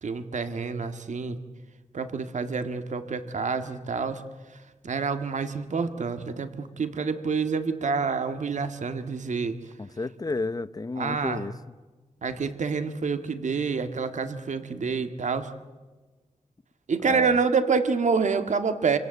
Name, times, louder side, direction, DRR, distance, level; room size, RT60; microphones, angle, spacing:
voice 1, 0.0-1.4 1.9-4.2 4.8-9.6 11.0-11.4 12.2-15.5 16.9-19.0, right 5 dB, 70° right, 1.8 m, -27 dB
voice 2, 9.8-11.7 17.0-17.4, left 3 dB, 30° left, 0.9 m, -32 dB
26.0 x 25.5 x 8.0 m
wide cardioid pair, 80°, 13 cm